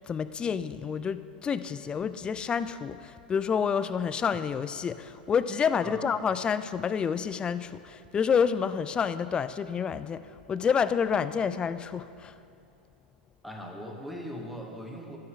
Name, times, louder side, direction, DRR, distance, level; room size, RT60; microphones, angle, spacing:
voice 1, 0.1-12.3, left 6 dB, 20° left, 13 dB, 0.3 m, -29 dB
voice 2, 13.4-15.2, equal, ahead, 0 dB, 1.2 m, -39 dB
12.5 x 5.5 x 5.6 m, 2.6 s
figure-of-eight pair, 95°, 5 cm